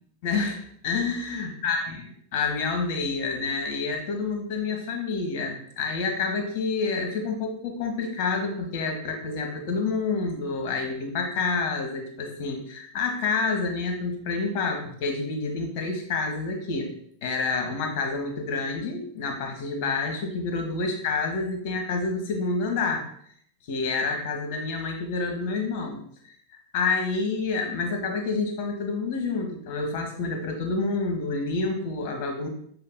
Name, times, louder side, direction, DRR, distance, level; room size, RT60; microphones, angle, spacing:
voice 1, 0.2-0.6 0.8-2.0 2.3-16.9 17.2-23.0 23.7-32.5, left 4 dB, 50° left, 3 dB, 1.4 m, -28 dB
7.5 x 5.5 x 2.2 m, 0.64 s
figure-of-eight pair, 90°, 0 cm